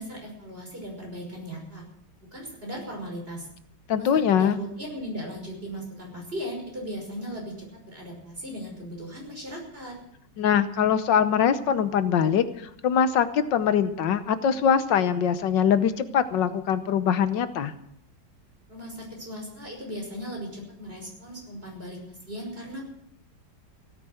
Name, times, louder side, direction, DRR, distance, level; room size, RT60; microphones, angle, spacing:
voice 1, 0.0-1.8 2.2-3.5 3.9-10.0 18.7-22.9, equal, 30° right, 0 dB, 6.0 m, -37 dB
voice 2, 3.9-4.6 10.4-17.7, left 8 dB, 85° left, 12 dB, 1.7 m, -23 dB
17.0 x 10.0 x 8.0 m, 0.71 s
omnidirectional pair, 1.9 m